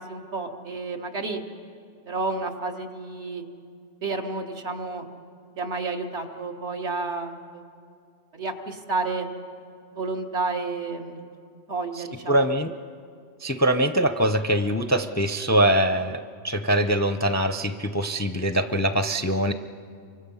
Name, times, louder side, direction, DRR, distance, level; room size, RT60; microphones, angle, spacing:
voice 1, 0.0-1.4 2.1-3.4 4.0-5.0 5.6-7.6 8.3-9.3 10.0-11.3 11.7-12.4, right 3 dB, 75° right, 2 dB, 2.0 m, -30 dB
voice 2, 12.0-12.7 13.4-19.5, right 1 dB, 20° left, 9 dB, 0.4 m, -23 dB
29.0 x 24.5 x 5.6 m, 2.3 s
omnidirectional pair, 1.2 m